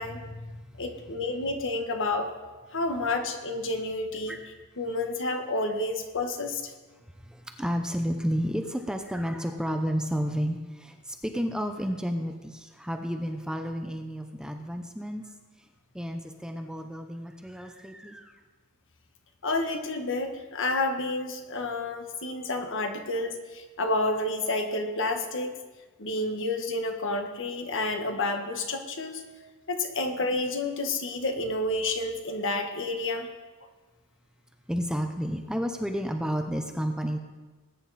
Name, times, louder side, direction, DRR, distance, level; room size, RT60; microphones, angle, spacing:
voice 1, 0.0-2.3 2.7-4.3 4.8-6.6 19.4-25.5 26.0-29.2 29.7-33.3, left 2 dB, 60° left, 5 dB, 1.6 m, -30 dB
voice 2, 7.3-15.2 15.9-18.3 34.7-37.2, equal, 5° right, 5 dB, 0.8 m, -31 dB
20.0 x 9.4 x 4.3 m, 1.3 s
head